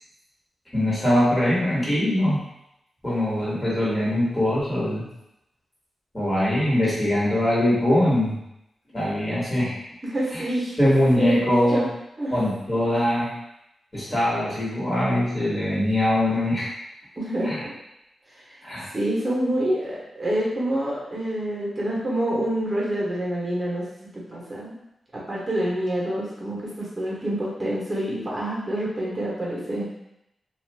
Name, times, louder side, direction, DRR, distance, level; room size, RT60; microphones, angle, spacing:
voice 1, 0.7-2.4 3.0-5.1 6.1-8.4 8.9-9.8 10.3-10.4 10.8-11.8 12.3-13.3 13.9-16.7 17.4-17.6 18.6-18.9, left 1 dB, 20° left, -7 dB, 1.4 m, -22 dB
voice 2, 10.0-10.9 11.2-11.9 12.2-12.4 17.2-17.7 18.3-18.6 18.9-23.8 24.1-24.7 25.1-29.9, right 1 dB, 25° right, -6 dB, 0.9 m, -27 dB
2.5 x 2.4 x 3.3 m, 0.84 s
cardioid pair, 70°, 0 cm